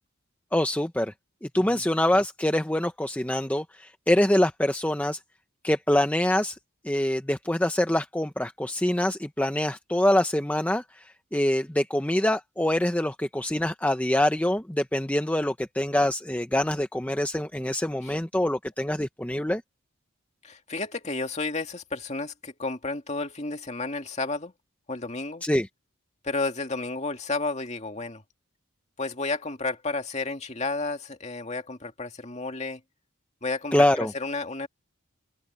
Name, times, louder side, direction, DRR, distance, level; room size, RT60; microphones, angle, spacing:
voice 1, 0.5-1.1 1.5-5.2 5.6-6.6 6.8-19.6 25.4-25.7 33.7-34.1, left 1 dB, 5° left, 0.7 m, -25 dB
voice 2, 20.4-24.5 24.9-25.4 26.2-28.2 29.0-32.8 33.4-34.7, left 3 dB, 35° left, 2.2 m, -32 dB
open air
head